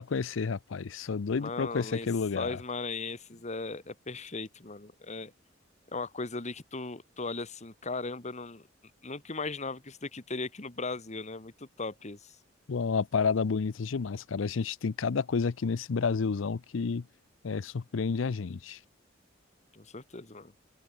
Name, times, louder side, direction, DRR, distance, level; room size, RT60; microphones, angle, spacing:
voice 1, 0.0-2.6 12.7-17.0 17.4-18.8, left 5 dB, 90° left, 0.5 m, -30 dB
voice 2, 1.4-2.1 2.3-5.3 5.9-8.7 9.0-12.3 19.7-20.5, left 3 dB, 35° left, 1.7 m, -37 dB
open air
head